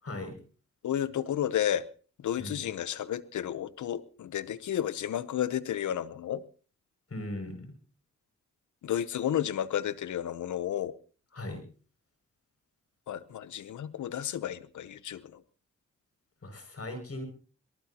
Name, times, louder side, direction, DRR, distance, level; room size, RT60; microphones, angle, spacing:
voice 1, 0.0-0.3 2.4-2.6 7.1-7.7 11.3-11.6 16.4-17.3, left 1 dB, 55° left, 5 dB, 6.4 m, -38 dB
voice 2, 0.8-1.8 2.2-6.4 8.8-10.9 13.1-15.4, left 10 dB, 90° left, 16 dB, 0.8 m, -32 dB
26.0 x 18.5 x 2.9 m, 0.40 s
cardioid pair, 45°, 29 cm